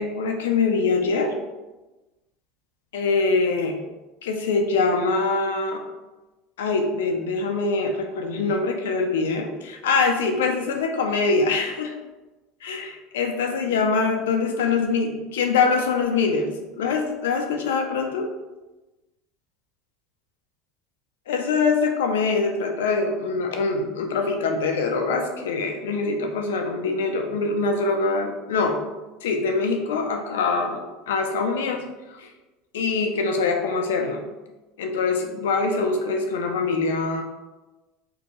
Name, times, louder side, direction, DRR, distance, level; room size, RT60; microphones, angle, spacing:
voice 1, 0.0-1.3 2.9-3.8 4.2-5.8 6.6-12.0 12.6-18.3 21.3-28.8 29.2-31.8 32.1-32.3 32.7-34.3 34.8-37.2, left 4 dB, 90° left, 4 dB, 0.4 m, -24 dB
2.6 x 2.2 x 2.9 m, 1.1 s
supercardioid pair, 100°, 0 cm